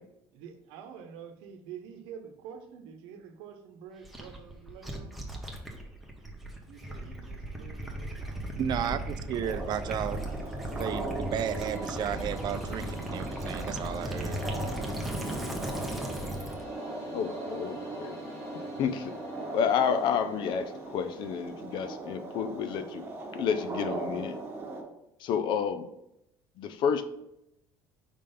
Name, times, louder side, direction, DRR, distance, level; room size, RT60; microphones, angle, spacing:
voice 1, 0.3-5.1 6.7-8.7, right 7 dB, 80° right, 6 dB, 0.9 m, -47 dB
Gurgling / Liquid, 4.0-16.6, right 1 dB, ahead, 1.1 m, -37 dB
voice 2, 8.6-10.2 10.8-14.4, right 9 dB, 50° right, 12 dB, 0.5 m, -33 dB
sound 1, 9.4-24.8, right 2 dB, 25° right, 1.4 m, -39 dB
sound 2, 11.0-21.3, equal, 30° left, 1.5 m, -45 dB
voice 3, 17.1-18.2 18.5-19.1 19.5-23.0 23.3-24.4 25.2-25.9 26.6-27.0, left 7 dB, 60° left, 10 dB, 0.6 m, -30 dB
5.2 x 3.3 x 5.5 m, 0.85 s
cardioid pair, 110°, 9 cm